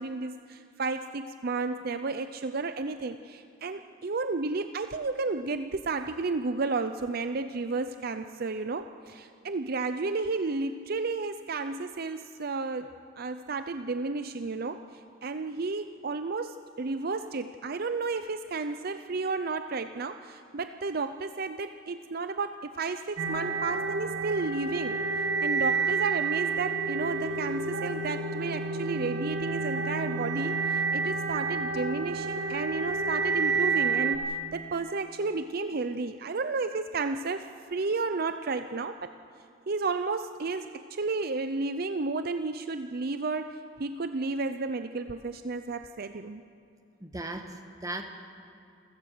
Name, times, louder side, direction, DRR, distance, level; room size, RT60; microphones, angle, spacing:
voice 1, 0.0-12.9 13.2-39.1 39.7-46.4, right 3 dB, 50° right, 9 dB, 0.6 m, -32 dB
sound 1, 23.2-34.2, right 4 dB, 75° right, 2.3 m, -29 dB
voice 2, 47.0-48.0, right 2 dB, 20° right, 5 dB, 1.6 m, -37 dB
29.0 x 15.5 x 6.7 m, 2.5 s
head